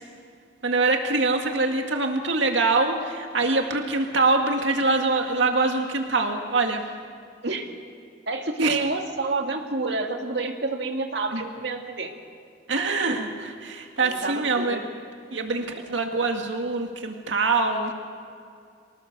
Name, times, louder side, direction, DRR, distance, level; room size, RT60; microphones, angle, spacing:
voice 1, 0.6-6.8 8.6-8.8 11.3-11.4 12.7-14.8 15.3-17.9, right 3 dB, 80° right, 3 dB, 2.0 m, -24 dB
voice 2, 8.3-12.1 14.0-14.8 15.3-15.7, right 3 dB, 65° right, 3 dB, 2.1 m, -29 dB
24.5 x 19.0 x 6.7 m, 2.3 s
head